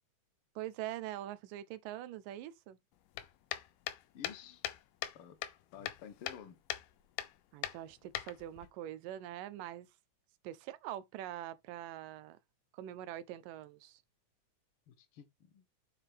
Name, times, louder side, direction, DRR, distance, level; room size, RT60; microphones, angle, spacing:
voice 1, 0.6-2.8 7.5-9.9 10.4-12.4 12.7-14.0, right 13 dB, 85° right, 2.4 m, -44 dB
sound 1, 3.1-5.2 5.4-6.4 6.7-6.9 7.2-7.3 7.6-8.7, left 12 dB, 85° left, 2.4 m, -40 dB
voice 2, 4.1-4.6 5.1-5.4 5.7-6.6 14.9-15.6, left 8 dB, 60° left, 1.5 m, -51 dB
8.0 x 5.7 x 3.4 m
omnidirectional pair, 3.8 m